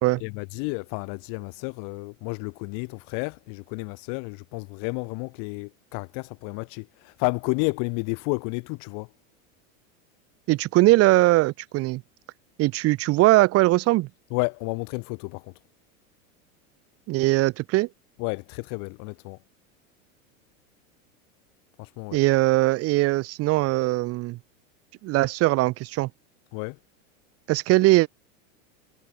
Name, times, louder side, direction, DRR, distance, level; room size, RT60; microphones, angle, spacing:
voice 1, 0.2-9.1 14.3-15.5 18.2-19.4 21.8-22.2 26.5-26.8, left 36 dB, 55° left, 4.0 m, -31 dB
voice 2, 10.5-12.0 12.6-14.1 17.1-17.9 22.1-24.4 25.0-26.1 27.5-28.1, right 19 dB, 35° right, 0.9 m, -20 dB
supercardioid pair, 130°, 40 cm